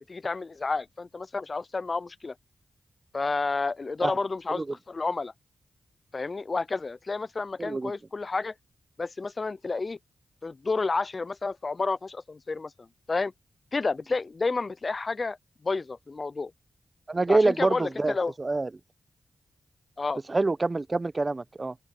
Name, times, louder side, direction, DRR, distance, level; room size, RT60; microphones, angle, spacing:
voice 1, 0.1-2.3 3.1-5.3 6.1-8.5 9.0-10.0 10.4-12.7 13.1-13.3 13.7-15.4 15.6-16.5 17.3-18.3 20.0-20.2, left 3 dB, 40° left, 0.4 m, -30 dB
voice 2, 7.6-7.9 17.1-18.7 20.3-21.7, right 3 dB, 35° right, 0.7 m, -26 dB
cardioid pair, 70°, 0 cm